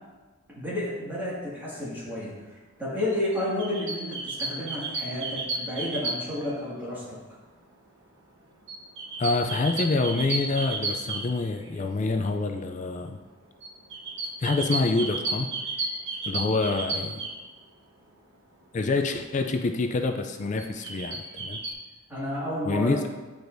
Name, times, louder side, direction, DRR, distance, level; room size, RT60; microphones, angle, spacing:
voice 1, 0.5-2.3 2.8-7.2 22.1-23.1, left 1 dB, 10° right, -9 dB, 1.9 m, -31 dB
sound 1, 3.3-6.5 8.7-11.8 13.6-17.4 20.6-21.7, right 2 dB, 55° right, 1.1 m, -32 dB
voice 2, 9.2-13.2 14.4-15.5 16.2-17.3 18.7-21.6 22.7-23.1, left 3 dB, 35° left, 6 dB, 0.3 m, -26 dB
9.9 x 4.7 x 2.6 m, 1.3 s
head